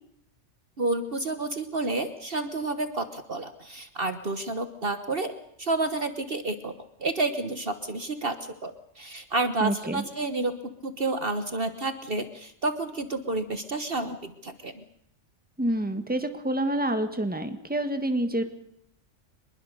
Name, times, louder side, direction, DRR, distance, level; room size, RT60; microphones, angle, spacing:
voice 1, 0.8-6.7 7.0-8.4 8.6-14.8, right 2 dB, 50° right, 10 dB, 1.5 m, -30 dB
voice 2, 9.6-10.0 15.6-18.4, right 1 dB, 5° right, 8 dB, 1.8 m, -27 dB
24.5 x 21.5 x 6.7 m, 0.71 s
omnidirectional pair, 1.3 m